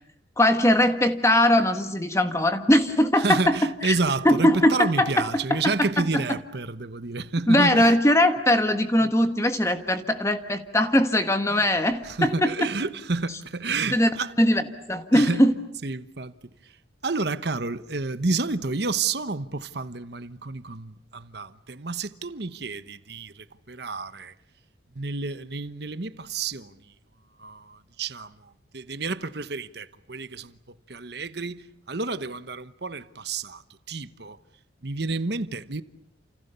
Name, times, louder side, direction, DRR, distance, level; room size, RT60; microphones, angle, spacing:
voice 1, 0.4-3.9 4.2-6.2 7.5-12.7 13.9-14.1 14.4-14.6 14.9-15.5, left 1 dB, 15° left, 1.4 m, -21 dB
voice 2, 3.2-7.9 9.0-9.1 11.5-11.6 12.0-14.3 15.1-15.5 15.8-16.3 17.0-24.3 24.9-26.7 27.4-30.6 30.9-33.6 33.9-34.4 34.8-35.8, right 3 dB, 55° right, 1.1 m, -30 dB
30.0 x 28.5 x 6.9 m
head